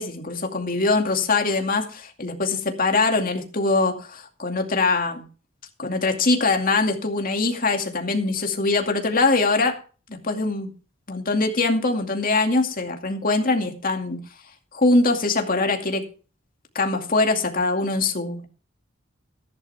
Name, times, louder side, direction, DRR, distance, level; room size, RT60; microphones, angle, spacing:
voice 1, 0.0-5.2 5.8-9.8 10.1-10.7 11.1-14.2 14.7-16.1 16.7-18.5, left 3 dB, 45° left, 3 dB, 2.4 m, -22 dB
15.0 x 10.5 x 3.5 m, 0.37 s
head